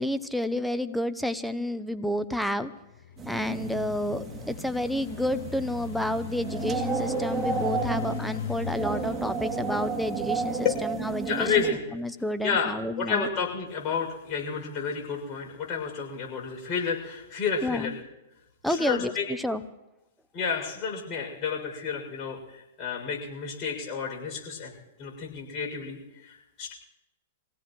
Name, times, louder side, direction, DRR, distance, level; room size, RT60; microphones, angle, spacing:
voice 1, 0.0-2.7 3.3-11.6 11.9-13.3 17.6-17.9 18.6-19.6, left 1 dB, ahead, 11 dB, 0.8 m, -30 dB
Engine, 2.8-10.9, left 9 dB, 70° left, 1.0 m, -39 dB
sound 1, 3.2-11.7, right 5 dB, 25° right, 2.7 m, -33 dB
voice 2, 11.3-11.8 12.4-12.7 13.0-17.9 18.6-19.3 20.3-24.7 25.0-26.7, left 6 dB, 35° left, -1 dB, 6.8 m, -30 dB
26.0 x 17.0 x 3.2 m, 0.97 s
hypercardioid pair, 115°, 0 cm